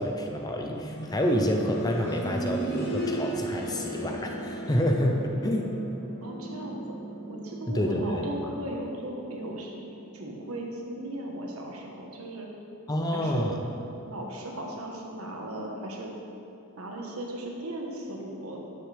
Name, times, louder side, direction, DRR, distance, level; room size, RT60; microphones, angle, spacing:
voice 1, 0.0-5.7 7.7-8.3 12.9-13.6, equal, 15° left, 2 dB, 0.6 m, -28 dB
piano harp remix, 0.7-11.5 11.8-11.9 12.8-12.9, right 1 dB, 70° left, 2.1 m, -37 dB
voice 2, 6.2-6.8 7.3-9.7 10.1-12.5 13.1-13.5 14.1-16.1 16.8-18.6, right 1 dB, 75° right, 0 dB, 1.3 m, -37 dB
12.0 x 7.7 x 3.4 m, 2.9 s
head